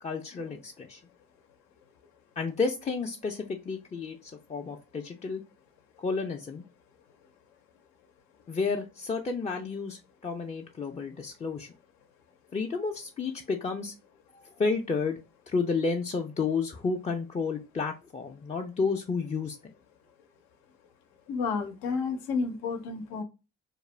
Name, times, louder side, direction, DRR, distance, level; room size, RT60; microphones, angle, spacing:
voice 1, 0.0-1.0 2.4-5.4 6.0-6.6 8.5-11.7 12.5-13.9 14.3-15.2 15.5-19.7, left 4 dB, 20° left, 1 dB, 0.3 m, -31 dB
voice 2, 21.3-23.2, left 5 dB, 90° left, 7 dB, 0.6 m, -31 dB
2.4 x 2.1 x 3.0 m, 0.29 s
supercardioid pair, 60°, 34 cm